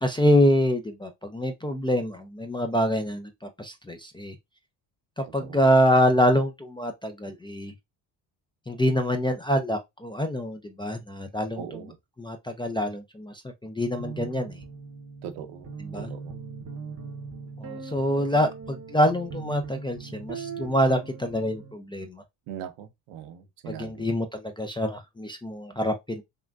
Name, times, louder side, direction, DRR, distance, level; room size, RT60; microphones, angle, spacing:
voice 1, 0.0-4.4 5.2-7.7 8.7-11.6 12.2-14.6 15.8-16.1 17.6-22.2 23.7-26.2, equal, 10° left, 0.3 m, -25 dB
voice 2, 5.2-5.6 11.6-12.0 15.2-15.7 15.9-16.4 22.5-24.1, right 9 dB, 80° right, 0.8 m, -40 dB
sound 1, 14.0-21.7, right 5 dB, 30° right, 0.7 m, -39 dB
3.6 x 2.5 x 2.2 m
supercardioid pair, 80°, 49 cm